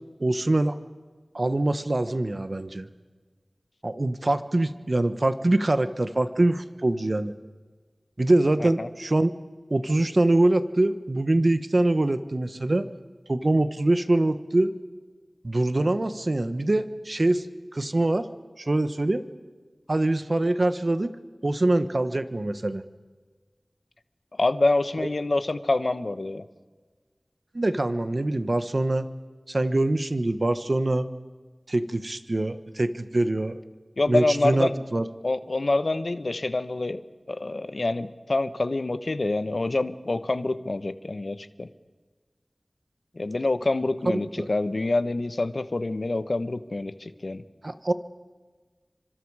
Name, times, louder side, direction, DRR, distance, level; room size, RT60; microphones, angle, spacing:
voice 1, 0.2-0.7 1.3-2.9 3.8-7.3 8.2-9.3 9.7-12.9 13.3-14.7 15.4-17.5 17.7-18.3 18.6-19.2 19.9-21.1 21.4-22.8 25.0-25.1 27.5-29.0 29.5-31.1 31.7-33.6 34.1-35.0 44.1-44.5 47.6-47.9, right 2 dB, 55° right, 11 dB, 1.3 m, -24 dB
voice 2, 24.4-26.4 34.0-34.7 35.2-37.0 37.3-41.7 43.2-47.4, left 2 dB, 70° left, 11 dB, 1.1 m, -26 dB
30.0 x 25.5 x 4.9 m, 1.4 s
wide cardioid pair, 40°, 0 cm